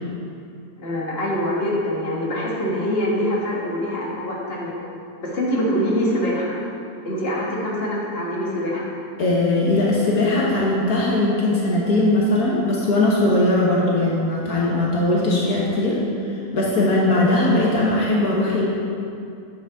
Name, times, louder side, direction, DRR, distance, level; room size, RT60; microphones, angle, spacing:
voice 1, 0.8-4.8 5.2-6.6 7.0-8.9 16.7-16.9, equal, 40° left, -5 dB, 2.0 m, -24 dB
voice 2, 9.2-16.0 16.3-18.7, left 2 dB, 70° left, -5 dB, 1.8 m, -19 dB
10.0 x 9.8 x 3.7 m, 2.5 s
omnidirectional pair, 1.6 m